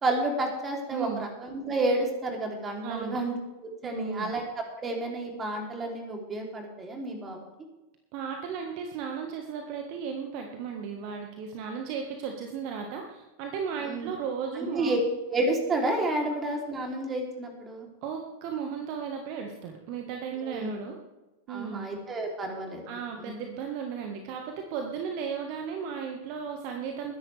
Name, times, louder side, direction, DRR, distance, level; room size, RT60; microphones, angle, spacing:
voice 1, 0.0-3.3 3.6-4.4 4.8-7.4 13.8-14.1 14.6-15.0 15.3-17.9 20.4-20.7 21.5-23.3, right 2 dB, 20° right, 1 dB, 3.5 m, -30 dB
voice 2, 0.9-1.2 2.8-3.2 3.8-4.3 8.1-14.9 18.0-21.0 21.5-21.9 22.9-27.2, right 6 dB, 45° right, 3 dB, 1.7 m, -35 dB
21.5 x 10.5 x 3.5 m, 1.0 s
figure-of-eight pair, 90°, 0 cm